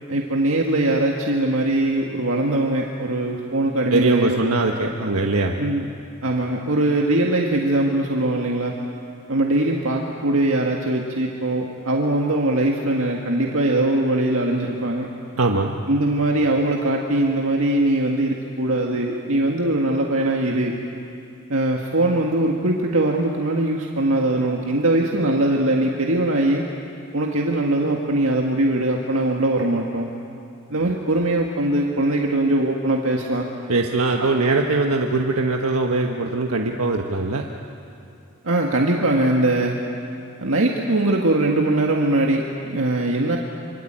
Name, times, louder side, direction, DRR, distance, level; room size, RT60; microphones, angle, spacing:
voice 1, 0.1-4.4 5.6-5.9 6.2-8.8 9.3-15.1 15.9-20.8 21.5-26.7 27.1-30.1 30.7-33.5 34.2-34.3 38.4-39.8 40.4-43.4, right 1 dB, 70° right, 0 dB, 1.9 m, -21 dB
voice 2, 3.9-5.6 15.4-15.7 33.7-37.4, right 3 dB, 90° right, 2 dB, 1.4 m, -21 dB
26.0 x 25.5 x 9.0 m, 2.6 s
head